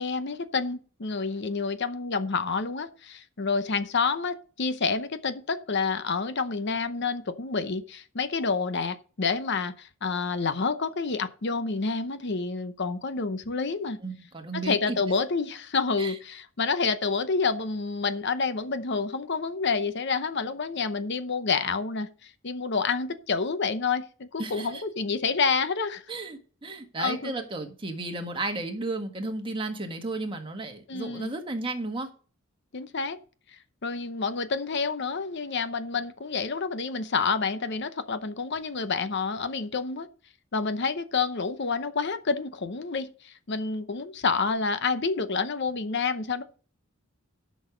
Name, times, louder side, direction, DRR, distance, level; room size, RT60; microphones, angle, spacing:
voice 1, 0.0-14.0 14.5-26.0 27.0-27.3 30.9-31.3 32.7-33.2 33.8-40.1 40.5-46.4, left 4 dB, 55° left, 0.8 m, -28 dB
voice 2, 14.0-15.0 16.0-16.1 24.4-24.8 26.1-32.1, right 2 dB, 25° right, 1.6 m, -33 dB
12.0 x 6.3 x 5.0 m
head